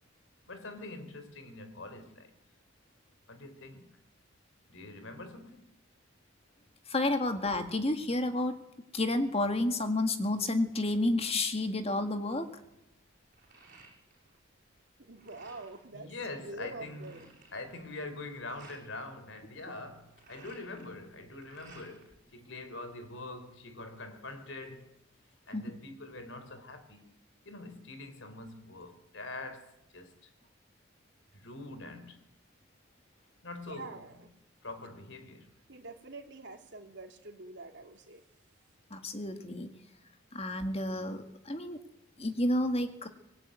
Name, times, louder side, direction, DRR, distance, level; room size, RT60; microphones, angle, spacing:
voice 1, 0.5-2.4 3.3-4.0 4.7-5.8 15.9-17.0 17.5-25.0 25.5-27.1 27.4-30.3 31.3-32.2 33.4-34.0 34.6-35.5, left 2 dB, 65° left, 3.6 m, -44 dB
voice 2, 6.9-8.5 8.9-12.5 25.5-25.6 38.9-39.7 40.3-41.8 42.2-43.1, left 2 dB, 30° left, 1.8 m, -30 dB
sound 1, 12.6-14.4 14.7-15.9 16.3-16.4 16.6-18.9 19.9-22.1 22.5-23.4, right 3 dB, 40° right, 7.7 m, -57 dB
voice 3, 15.0-17.3 33.7-34.3 35.7-38.2, right 2 dB, 60° right, 3.1 m, -46 dB
25.0 x 19.0 x 9.2 m
head